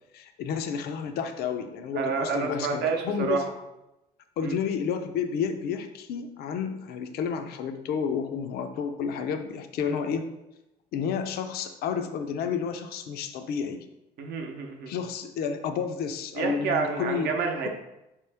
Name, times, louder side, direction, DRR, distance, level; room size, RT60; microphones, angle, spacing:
voice 1, 0.1-3.4 4.4-10.3 10.9-13.9 14.9-17.3 17.6-17.7, left 7 dB, 70° left, 7 dB, 0.4 m, -31 dB
voice 2, 1.9-3.5 4.4-4.5 9.8-9.9 14.2-14.9 16.3-17.7, right 5 dB, 75° right, 3 dB, 0.7 m, -29 dB
4.2 x 3.0 x 3.3 m, 0.93 s
cardioid pair, 110°, 17 cm